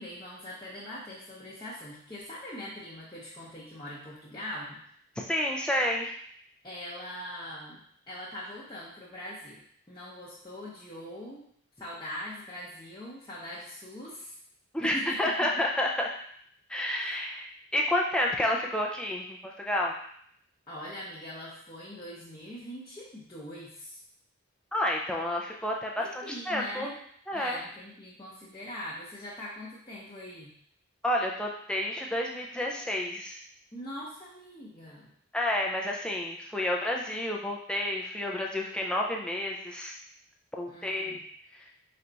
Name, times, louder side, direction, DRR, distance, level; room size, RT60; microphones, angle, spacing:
voice 1, 0.0-4.8 6.6-7.8 8.1-9.6 9.9-11.4 11.8-14.4 14.8-15.6 17.0-17.2 20.7-24.0 26.0-26.9 27.3-30.5 33.7-35.1 40.7-41.2, left 1 dB, 20° left, -8 dB, 0.7 m, -42 dB
voice 2, 5.2-6.2 14.7-16.2 16.7-19.9 24.7-26.9 27.3-27.6 31.0-33.4 35.3-40.0 40.6-41.2 41.5-41.6, left 1 dB, 5° left, -1 dB, 0.3 m, -30 dB
4.2 x 2.3 x 3.9 m, 0.65 s
head